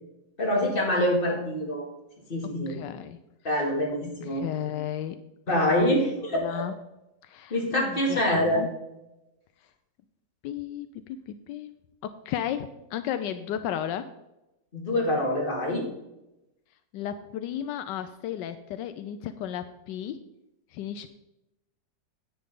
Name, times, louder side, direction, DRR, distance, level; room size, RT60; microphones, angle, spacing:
voice 1, 0.4-1.9 2.3-2.8 3.4-4.4 5.5-6.6 7.5-8.6 14.7-15.9, left 1 dB, 30° left, -2 dB, 2.5 m, -25 dB
voice 2, 2.7-3.2 4.3-5.2 5.5-5.6 6.3-6.7 7.2-8.7 10.4-11.7 12.0-14.1 16.9-20.2 20.7-21.1, left 10 dB, 85° left, 11 dB, 1.2 m, -34 dB
10.0 x 8.8 x 3.7 m, 0.93 s
omnidirectional pair, 1.9 m